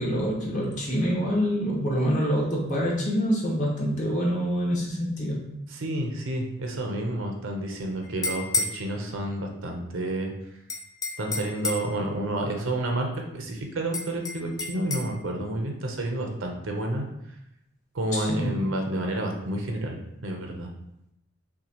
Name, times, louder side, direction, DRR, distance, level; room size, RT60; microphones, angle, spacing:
voice 1, 0.0-5.4 18.1-18.5, equal, 40° left, -4 dB, 1.1 m, -26 dB
voice 2, 5.7-10.3 11.2-13.1 13.3-17.1 17.9-20.7, right 1 dB, 70° right, 2 dB, 0.7 m, -30 dB
sound 1, 8.0-8.8 10.7-11.9 13.9-15.1, left 3 dB, 20° left, 0.4 m, -30 dB
5.9 x 2.3 x 2.9 m, 0.83 s
head